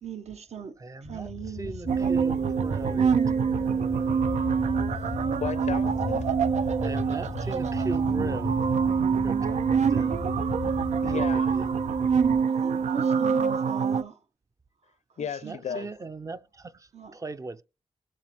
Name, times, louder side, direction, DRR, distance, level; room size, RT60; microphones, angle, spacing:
voice 1, 0.0-0.7 1.0-2.1 9.7-10.2 12.4-14.2 15.2-15.9 16.9-17.2, right 8 dB, 70° right, 1.1 m, -40 dB
voice 2, 0.8-1.3 1.6-3.2 6.8-8.5 9.2-10.1 11.5-11.6 15.4-17.6, right 3 dB, 30° right, 0.5 m, -38 dB
sound 1, 1.0-12.4, left 4 dB, 30° left, 0.5 m, -37 dB
sound 2, 1.9-14.0, right 6 dB, 90° right, 0.5 m, -25 dB
voice 3, 5.4-6.3 7.4-7.5 11.0-11.6 15.2-15.9, left 8 dB, 90° left, 0.6 m, -34 dB
21.0 x 7.3 x 3.1 m
wide cardioid pair, 115°, 12 cm